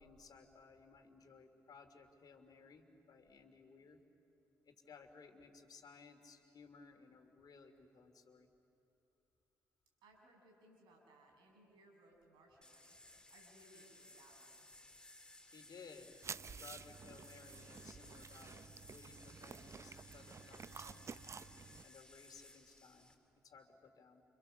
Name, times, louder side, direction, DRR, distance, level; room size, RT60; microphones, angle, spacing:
voice 1, 0.0-4.0 4.6-8.5 15.5-21.3 21.8-23.2 23.4-24.2, left 5 dB, 50° left, 6 dB, 3.0 m, -59 dB
voice 2, 10.0-13.0 13.3-14.7, right 1 dB, 65° right, 1 dB, 6.9 m, -65 dB
sound 1, 12.6-23.1, left 1 dB, 10° left, 3.6 m, -60 dB
sound 2, 16.2-21.8, right 5 dB, 35° right, 0.7 m, -51 dB
29.0 x 26.5 x 7.0 m, 2.7 s
figure-of-eight pair, 45°, 8 cm